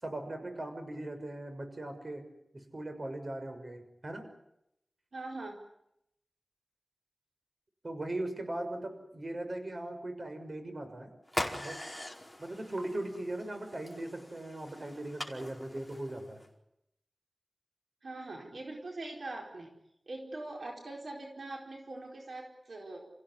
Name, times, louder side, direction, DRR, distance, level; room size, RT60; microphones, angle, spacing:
voice 1, 0.0-2.2 2.5-4.3 7.8-11.1 11.6-11.8 12.4-16.4, right 1 dB, 50° right, 6 dB, 6.3 m, -39 dB
voice 2, 5.1-5.6 18.0-19.7 20.1-23.1, right 2 dB, 85° right, 1 dB, 4.5 m, -42 dB
sound 1, 11.3-16.5, left 1 dB, 5° left, 4.8 m, -42 dB
30.0 x 16.0 x 9.8 m, 0.80 s
wide cardioid pair, 60°, 0 cm